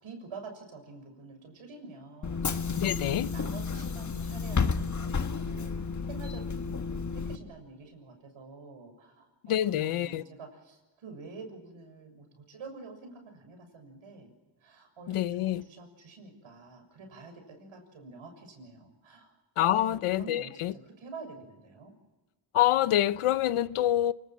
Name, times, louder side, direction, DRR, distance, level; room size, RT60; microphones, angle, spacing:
voice 1, 0.0-2.4 2.8-14.3 14.6-19.3 19.7-21.9, right 4 dB, 70° right, 6.8 m, -47 dB
Bus / Engine, 2.2-7.4, left 5 dB, 35° left, 1.6 m, -31 dB
voice 2, 2.7-3.3 9.5-10.2 15.1-15.6 19.6-20.7 22.5-24.1, left 12 dB, 80° left, 0.9 m, -26 dB
28.0 x 19.5 x 7.5 m
cardioid pair, 80°, 50 cm